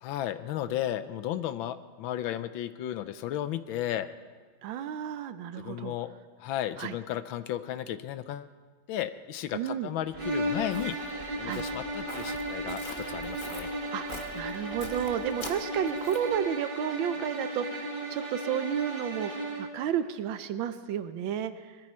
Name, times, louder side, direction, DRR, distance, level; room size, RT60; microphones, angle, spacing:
voice 1, 0.0-4.1 5.6-6.1 6.4-8.5 8.9-10.9 11.4-13.7, left 12 dB, 75° left, 12 dB, 1.3 m, -34 dB
voice 2, 4.6-5.9 6.8-6.9 9.5-9.9 11.4-11.6 13.9-14.0 14.3-19.3 19.6-21.5, right 9 dB, 75° right, 11 dB, 1.3 m, -32 dB
Walk footsteps, 10.1-16.4, left 3 dB, 35° left, 0.9 m, -45 dB
sound 1, 10.1-19.8, right 1 dB, 25° right, 1.6 m, -35 dB
21.0 x 13.5 x 4.3 m, 1.4 s
omnidirectional pair, 2.3 m